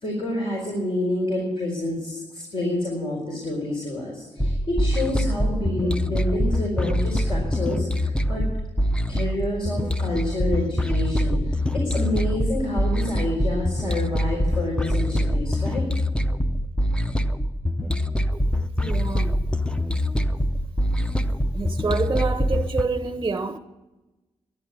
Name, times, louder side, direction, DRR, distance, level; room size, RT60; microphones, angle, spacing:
voice 1, 0.0-8.5 9.1-15.9, left 1 dB, 50° left, 4.4 m, -28 dB
sound 1, 4.4-22.8, equal, 10° left, 0.7 m, -24 dB
voice 2, 18.8-19.4 21.5-23.6, right 4 dB, 30° right, 0.7 m, -27 dB
11.5 x 10.0 x 9.4 m
cardioid pair, 75°, 11 cm